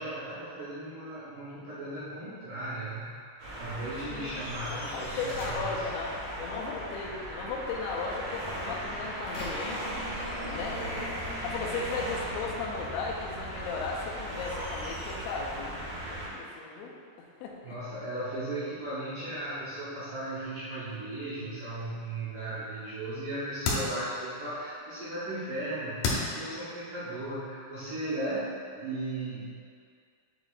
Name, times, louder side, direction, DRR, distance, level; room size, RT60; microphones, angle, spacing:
voice 1, 0.0-3.1 3.6-5.8 11.7-11.8 17.6-29.5, right 1 dB, 75° right, -11 dB, 1.9 m, -36 dB
sound 1, 3.4-16.3, equal, 55° right, 1.8 m, -37 dB
sound 2, 3.8-6.5 8.7-11.2 11.6-12.5 13.5-15.2, left 1 dB, 55° left, 2.2 m, -46 dB
voice 2, 4.7-9.9 10.5-10.8 11.4-17.8, left 4 dB, 90° left, -1 dB, 2.9 m, -36 dB
sound 3, 20.9-26.5, left 3 dB, 75° left, 2.3 m, -37 dB
8.1 x 5.0 x 2.4 m, 2.2 s
omnidirectional pair, 5.1 m